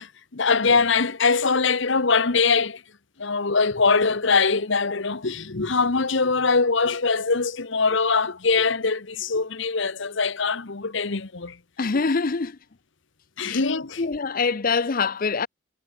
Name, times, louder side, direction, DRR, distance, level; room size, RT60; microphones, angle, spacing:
voice 1, 0.0-2.8 3.2-11.6 13.4-14.0, left 4 dB, 60° left, 1.1 m, -22 dB
voice 2, 11.8-12.6 13.5-13.6 14.0-15.5, left 4 dB, 40° left, 0.6 m, -24 dB
head